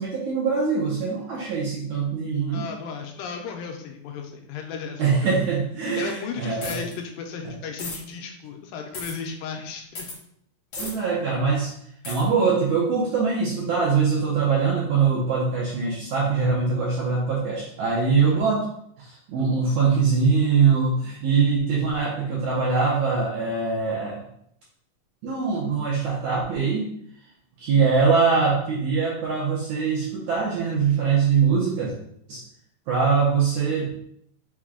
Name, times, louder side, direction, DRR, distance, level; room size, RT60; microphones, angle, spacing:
voice 1, 0.0-2.7 5.0-6.8 7.4-7.5 10.8-11.7 12.1-18.7 19.0-24.2 25.2-26.9 27.6-31.9 32.3-32.4 32.9-33.9, right 5 dB, 75° right, -6 dB, 1.8 m, -23 dB
voice 2, 2.5-5.4 6.0-10.1 18.2-18.4, left 6 dB, 80° left, 3 dB, 2.2 m, -35 dB
sound 1, 6.6-6.9 7.8-8.0 8.9-9.1 9.9-10.2 10.7-10.9 12.0-12.2, left 2 dB, 60° left, 1.0 m, -34 dB
6.0 x 2.2 x 3.6 m, 0.71 s
omnidirectional pair, 4.1 m